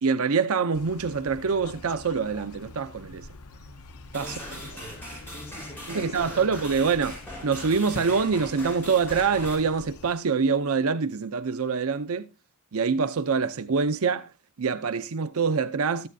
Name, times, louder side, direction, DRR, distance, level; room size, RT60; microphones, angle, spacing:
voice 1, 0.0-3.3 4.1-4.4 5.9-12.3 12.7-14.3 14.6-16.1, right 5 dB, 70° right, 0.6 m, -25 dB
sound 1, 0.7-10.1, left 2 dB, 80° left, 0.8 m, -44 dB
sound 2, 4.1-9.6, equal, 10° left, 5.3 m, -41 dB
voice 2, 4.2-6.5, left 1 dB, 30° left, 4.2 m, -44 dB
14.0 x 9.5 x 2.7 m
head